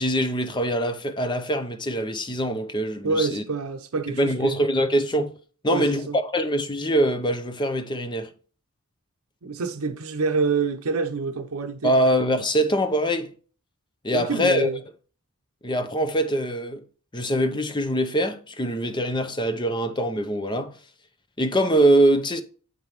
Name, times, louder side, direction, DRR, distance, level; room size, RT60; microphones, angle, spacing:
voice 1, 0.0-3.4 4.2-5.3 5.6-8.3 11.8-13.3 14.0-14.7 15.6-16.8 17.1-20.8 21.4-22.4, equal, 20° left, 0.6 m, -23 dB
voice 2, 3.0-4.6 5.7-6.2 9.4-11.9 14.1-14.8, right 4 dB, 75° right, 0.7 m, -27 dB
8.0 x 5.2 x 3.1 m
head